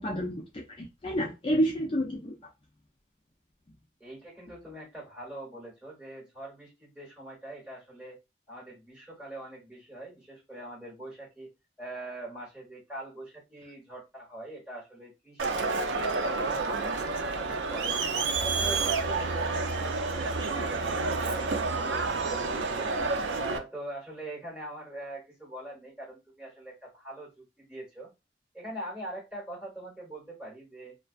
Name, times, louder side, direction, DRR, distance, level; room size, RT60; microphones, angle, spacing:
voice 1, 0.0-2.3, equal, 30° left, 0.4 m, -29 dB
voice 2, 4.0-8.2 8.5-11.5 11.8-15.7 16.0-18.0 18.4-22.9 23.4-28.1 28.5-31.0, right 1 dB, 5° right, 1.4 m, -43 dB
Crowd, 15.4-23.6, right 3 dB, 85° right, 0.4 m, -29 dB
2.2 x 2.2 x 2.5 m
head